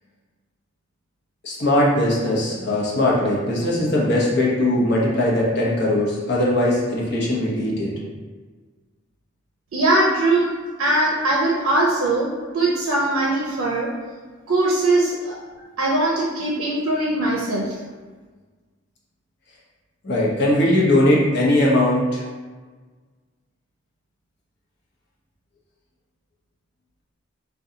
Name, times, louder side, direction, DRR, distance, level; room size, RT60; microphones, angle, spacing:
voice 1, 1.4-7.9 20.0-22.2, left 1 dB, 55° left, -4 dB, 0.7 m, -20 dB
voice 2, 9.7-10.5 10.8-13.9 14.5-15.4 15.8-17.6, right 2 dB, 85° right, -3 dB, 0.5 m, -21 dB
2.7 x 2.2 x 3.7 m, 1.4 s
head